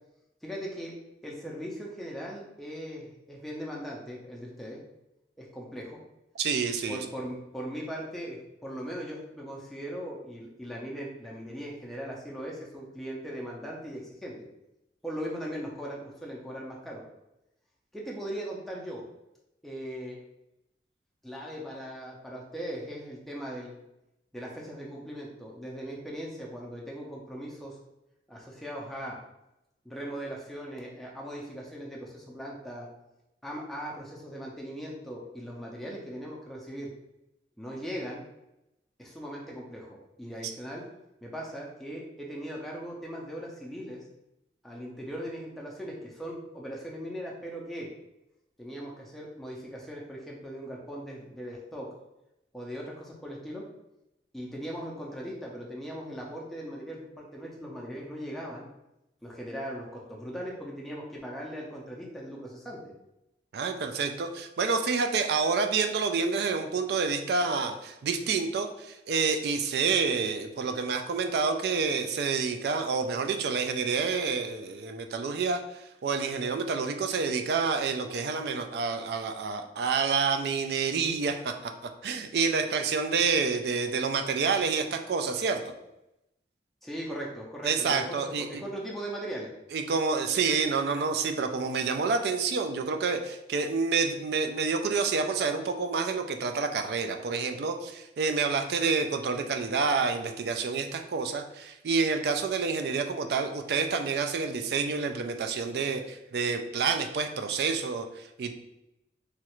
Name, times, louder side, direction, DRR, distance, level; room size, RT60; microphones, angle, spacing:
voice 1, 0.4-0.9 1.2-4.8 5.4-6.0 6.9-14.3 15.0-17.0 17.9-19.0 19.6-20.2 21.2-23.7 24.3-27.8 28.3-29.2 29.8-32.9 33.4-36.9 37.6-38.2 39.0-40.8 41.2-44.0 44.6-47.9 48.6-51.9 52.5-53.6 54.3-58.7 59.2-62.9 86.8-89.5, equal, ahead, -4 dB, 0.4 m, -39 dB
voice 2, 6.4-7.0 63.5-75.6 76.0-81.7 82.0-85.7 87.6-88.6 89.7-108.5, right 5 dB, 60° right, 6 dB, 0.3 m, -28 dB
3.1 x 2.4 x 3.0 m, 0.89 s
head